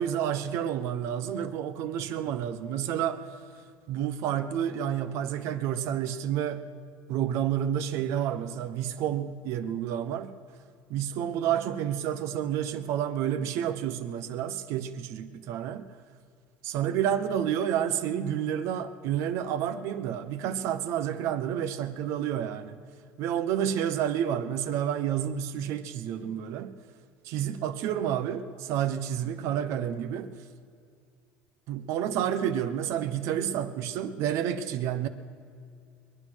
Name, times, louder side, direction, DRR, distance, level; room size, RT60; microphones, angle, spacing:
voice 1, 0.0-3.3 3.9-6.7 7.1-10.3 10.9-15.9 16.6-22.8 23.2-26.7 27.2-30.3 31.7-35.1, right 10 dB, 65° right, 1.0 m, -30 dB
22.0 x 10.0 x 6.3 m
supercardioid pair, 105°, 5 cm